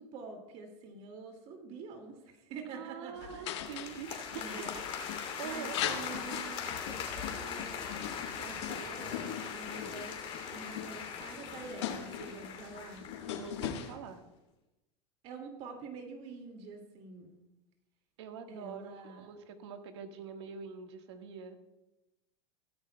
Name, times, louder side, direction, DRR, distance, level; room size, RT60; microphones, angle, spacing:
voice 1, 0.0-3.5 4.4-4.8 5.4-9.2 9.5-10.2 10.5-13.0 15.2-17.4 18.5-19.3, right 4 dB, 50° right, 4 dB, 2.2 m, -47 dB
voice 2, 2.7-4.6 5.4-5.8 13.3-14.2 18.2-21.6, right 7 dB, 85° right, 5 dB, 1.6 m, -45 dB
sound 1, 3.2-13.9, left 10 dB, 85° left, 1.3 m, -41 dB
sound 2, 3.6-13.9, left 7 dB, 40° left, 2.8 m, -41 dB
16.5 x 13.0 x 2.2 m, 0.98 s
supercardioid pair, 135°, 14 cm